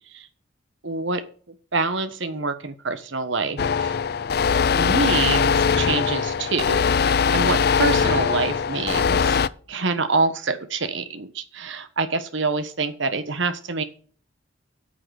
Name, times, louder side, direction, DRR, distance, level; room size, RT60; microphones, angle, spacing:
voice 1, 0.8-1.2 1.7-4.0 4.7-9.4 9.7-13.8, right 3 dB, 65° right, 10 dB, 1.3 m, -26 dB
sound 1, 3.6-9.5, left 6 dB, 50° left, 0.4 m, -21 dB
8.7 x 6.5 x 6.4 m, 0.44 s
head